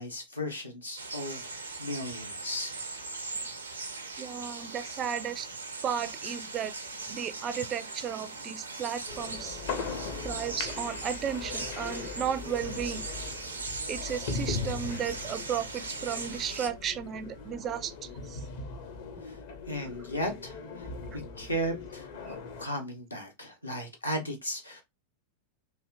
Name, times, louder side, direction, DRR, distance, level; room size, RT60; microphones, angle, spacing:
voice 1, 0.0-1.5 1.8-2.7 19.2-19.4 19.7-20.8 21.1-24.8, equal, 85° left, 0.8 m, -36 dB
sound 1, 1.0-16.7, right 3 dB, 80° right, 0.5 m, -40 dB
voice 2, 4.2-5.5 5.8-6.7 7.1-9.6 10.2-13.0 13.9-18.5 22.3-22.4, right 8 dB, 30° right, 0.3 m, -34 dB
sound 2, 9.1-22.6, left 4 dB, 55° left, 0.7 m, -39 dB
3.3 x 2.6 x 2.3 m
figure-of-eight pair, 90°, 0 cm